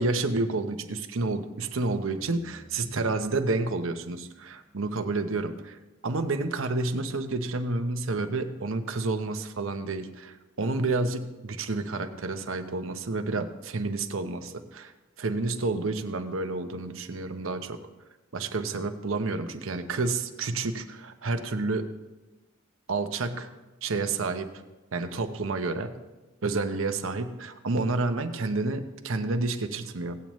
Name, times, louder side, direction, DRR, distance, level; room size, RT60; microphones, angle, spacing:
voice 1, 0.0-5.8 6.0-14.9 15.2-17.9 18.3-21.9 22.9-23.5 23.8-24.5 24.9-25.9 26.4-30.2, right 3 dB, 75° right, 8 dB, 0.8 m, -30 dB
sound 1, 2.2-5.9, equal, ahead, 4.6 m, -56 dB
17.0 x 8.7 x 3.1 m, 1.1 s
head